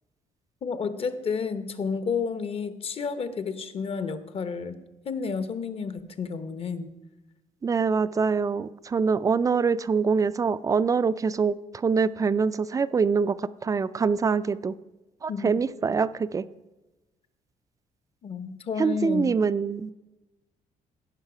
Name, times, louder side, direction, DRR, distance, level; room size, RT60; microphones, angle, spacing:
voice 1, 0.6-6.9 15.3-15.6 18.2-19.4, left 5 dB, 45° left, 12 dB, 0.8 m, -31 dB
voice 2, 7.6-14.7 15.2-16.4 18.8-19.9, right 5 dB, 25° right, 15 dB, 0.3 m, -24 dB
16.0 x 5.6 x 4.9 m, 1.1 s
cardioid pair, 110°, 14 cm